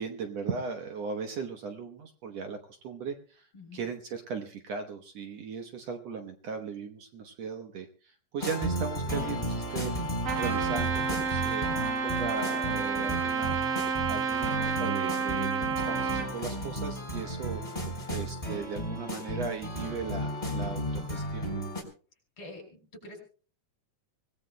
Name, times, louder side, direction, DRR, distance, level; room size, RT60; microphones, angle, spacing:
voice 1, 0.0-9.9 10.3-11.7 12.0-13.8 14.1-17.6 18.1-21.5, right 5 dB, 65° right, 5 dB, 2.0 m, -38 dB
sound 1, 8.4-21.8, right 1 dB, 10° left, 3.1 m, -34 dB
Trumpet, 10.2-16.3, right 5 dB, 90° right, 3.9 m, -30 dB
voice 2, 22.4-23.2, left 2 dB, 45° left, 3 dB, 5.9 m, -46 dB
25.0 x 18.0 x 2.2 m, 0.38 s
omnidirectional pair, 3.6 m